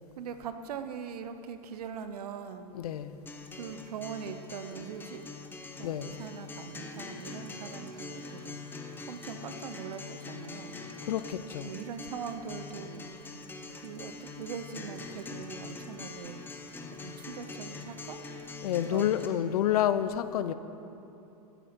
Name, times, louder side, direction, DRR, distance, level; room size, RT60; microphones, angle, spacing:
voice 1, 0.2-2.7 3.5-5.3 5.8-8.7 9.1-10.8 11.6-13.3 13.8-16.4 17.0-18.2 18.8-19.2 20.4-20.5, right 7 dB, 85° right, 9 dB, 0.8 m, -41 dB
voice 2, 2.7-3.2 5.8-6.1 11.0-11.7 18.6-20.5, left 11 dB, 75° left, 13 dB, 0.6 m, -29 dB
Acoustic guitar, 3.3-19.3, left 3 dB, 10° left, 0.7 m, -43 dB
14.0 x 8.2 x 4.4 m, 2.9 s
supercardioid pair, 135°, 19 cm